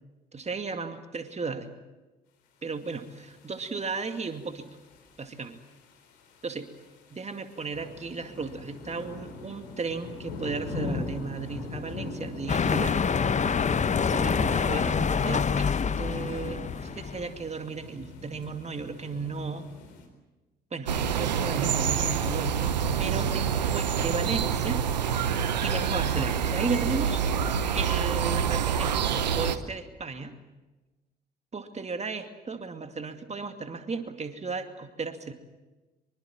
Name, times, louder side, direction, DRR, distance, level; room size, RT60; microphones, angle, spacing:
voice 1, 0.3-1.7 2.6-4.7 5.2-5.6 6.4-6.6 7.1-13.0 14.0-19.7 20.7-24.8 25.6-27.2 27.7-28.9 29.3-30.3 31.5-35.3, right 4 dB, 30° right, 7 dB, 2.4 m, -35 dB
sound 1, 2.9-20.0, left 3 dB, 75° left, 4.2 m, -41 dB
sound 2, 12.5-17.5, left 6 dB, 35° left, 1.1 m, -26 dB
sound 3, 20.9-29.6, right 7 dB, 85° right, 1.0 m, -27 dB
25.5 x 24.0 x 7.5 m, 1.1 s
figure-of-eight pair, 45°, 21 cm